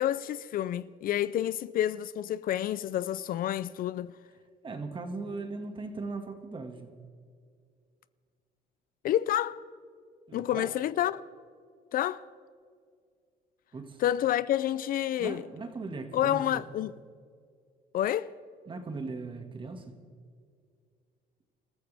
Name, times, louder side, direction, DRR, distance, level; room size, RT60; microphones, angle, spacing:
voice 1, 0.0-4.1 9.0-9.6 10.3-11.2 11.9-12.2 14.0-15.4 16.1-16.9 17.9-18.3, left 12 dB, 60° left, 0.4 m, -29 dB
voice 2, 4.6-6.9 10.3-10.7 13.7-14.0 15.2-16.6 18.7-20.0, right 3 dB, 30° right, 2.0 m, -38 dB
28.0 x 14.0 x 3.5 m
cardioid pair, 110°, 17 cm